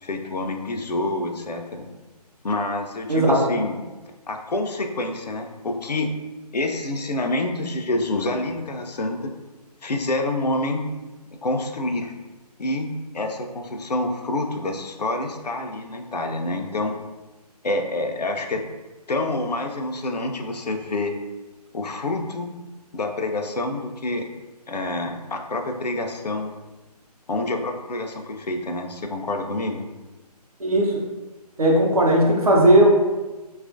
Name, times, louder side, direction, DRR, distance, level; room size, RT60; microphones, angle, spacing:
voice 1, 0.0-1.9 2.4-3.8 4.3-6.1 6.5-9.3 9.8-10.8 11.4-12.1 12.6-16.9 17.6-18.6 19.1-21.1 21.7-22.5 22.9-24.3 24.7-26.5 27.3-29.9, left 2 dB, 75° left, 4 dB, 0.4 m, -27 dB
voice 2, 30.6-31.0 31.6-32.9, right 1 dB, 60° right, -1 dB, 0.7 m, -17 dB
2.9 x 2.4 x 2.4 m, 1.2 s
figure-of-eight pair, 145°, 21 cm